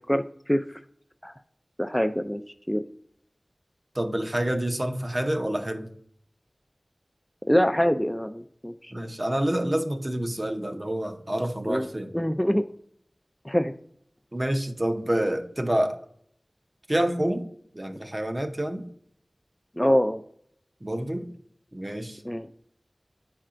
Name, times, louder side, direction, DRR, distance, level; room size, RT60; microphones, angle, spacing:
voice 1, 0.1-0.8 1.2-1.3 1.8-2.4 2.7-2.8 7.5-9.0 11.7-11.9 12.1-12.7 13.4-13.7 19.8-20.2 22.2-22.5, equal, 5° left, 0.3 m, -24 dB
voice 2, 3.9-5.9 8.9-12.1 14.3-16.0 16.9-17.5 17.7-18.9 20.8-21.3 21.7-22.2, right 1 dB, 35° right, 0.7 m, -28 dB
10.5 x 4.3 x 2.5 m
wide cardioid pair, 55°, 0 cm